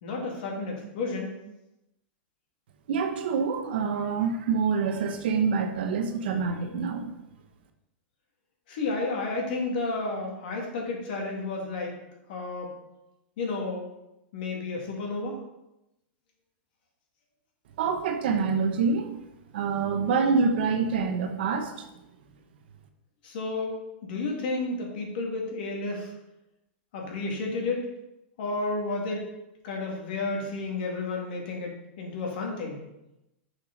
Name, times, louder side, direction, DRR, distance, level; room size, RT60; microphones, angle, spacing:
voice 1, 0.0-1.3 8.7-11.9 12.3-12.7 13.4-13.9 14.3-15.4 23.2-26.1 26.9-27.9 28.4-29.2 29.6-32.8, left 3 dB, 55° left, -1 dB, 2.2 m, -31 dB
voice 2, 2.9-7.2 17.8-19.1 19.5-21.9, right 5 dB, 60° right, 6 dB, 0.9 m, -26 dB
6.8 x 5.7 x 4.0 m, 0.91 s
supercardioid pair, 170°, 6 cm